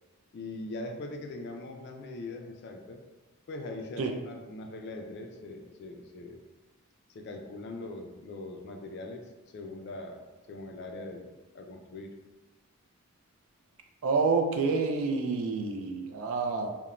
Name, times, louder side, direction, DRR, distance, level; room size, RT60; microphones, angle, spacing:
voice 1, 0.3-3.1 3.5-6.4 7.1-12.2, left 2 dB, 50° left, 3 dB, 0.3 m, -41 dB
voice 2, 14.0-16.7, right 4 dB, 65° right, 4 dB, 0.3 m, -28 dB
2.4 x 2.1 x 2.9 m, 1.1 s
head